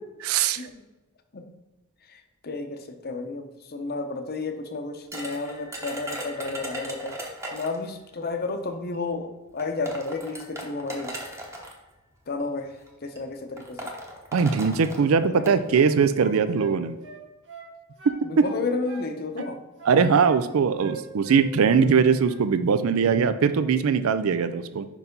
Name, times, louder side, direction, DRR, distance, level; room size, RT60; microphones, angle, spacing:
voice 1, 0.2-0.6 14.3-17.0 19.9-24.9, right 6 dB, 85° right, 11 dB, 0.4 m, -21 dB
voice 2, 2.1-7.2 7.5-11.2 12.3-13.9 15.2-15.8 18.2-19.6, left 3 dB, 50° left, 6 dB, 0.7 m, -32 dB
sound 1, 5.1-7.9 8.9-9.0 9.6-11.7 12.6-12.9 13.2-13.3 13.6-15.6, right 1 dB, 15° right, 0.9 m, -37 dB
sound 2, 15.2-17.7 18.0-19.1 19.4-20.4 20.8-21.9 22.2-22.4, right 3 dB, 60° right, 1.4 m, -42 dB
5.4 x 4.7 x 5.2 m, 1.1 s
head